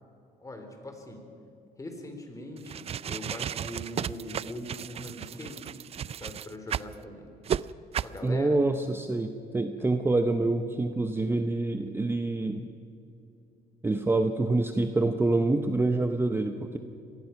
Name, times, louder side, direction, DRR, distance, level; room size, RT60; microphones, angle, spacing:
voice 1, 0.4-1.2 1.8-5.7 6.2-7.3 8.0-8.6, left 1 dB, 20° left, 5 dB, 3.7 m, -41 dB
sound 1, 2.6-6.9 7.4-7.6 7.9-8.2, right 9 dB, 35° right, 0.4 m, -34 dB
voice 2, 8.2-12.7 13.8-16.8, right 2 dB, 15° right, 7 dB, 0.9 m, -26 dB
25.0 x 19.0 x 5.9 m, 2.6 s
cardioid pair, 110°, 17 cm